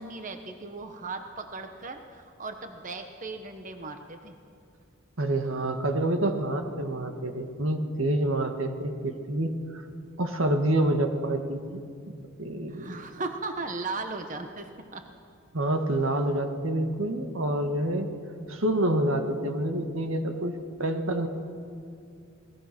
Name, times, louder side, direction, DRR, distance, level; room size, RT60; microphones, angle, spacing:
voice 1, 0.0-4.4 12.7-15.1, right 3 dB, 40° right, 6 dB, 1.1 m, -37 dB
voice 2, 5.2-9.8 10.2-11.8 12.4-13.0 15.5-18.1 18.5-20.5 20.8-21.3, right 1 dB, 80° right, 6 dB, 1.8 m, -27 dB
28.0 x 19.5 x 6.1 m, 2.4 s
head